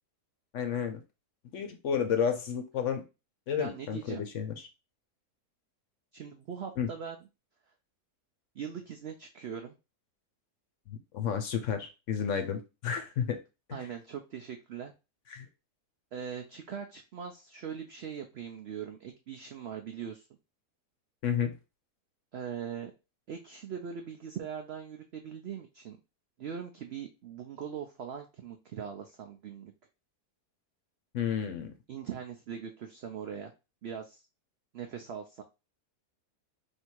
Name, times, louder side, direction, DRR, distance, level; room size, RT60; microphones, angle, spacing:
voice 1, 0.5-1.0 1.5-3.0 3.5-4.5 6.8-6.9 10.9-13.4 13.7-13.8 15.3-15.5 21.2-21.6 31.1-31.7, left 7 dB, 60° left, 7 dB, 0.9 m, -31 dB
voice 2, 3.6-4.2 6.1-7.2 8.5-9.7 13.7-14.9 16.1-20.3 22.3-22.9 23.3-26.0 26.4-29.7 31.9-33.5 33.8-34.2 34.7-35.4, right 7 dB, 90° right, 5 dB, 0.5 m, -41 dB
3.4 x 2.8 x 4.4 m, 0.28 s
omnidirectional pair, 1.7 m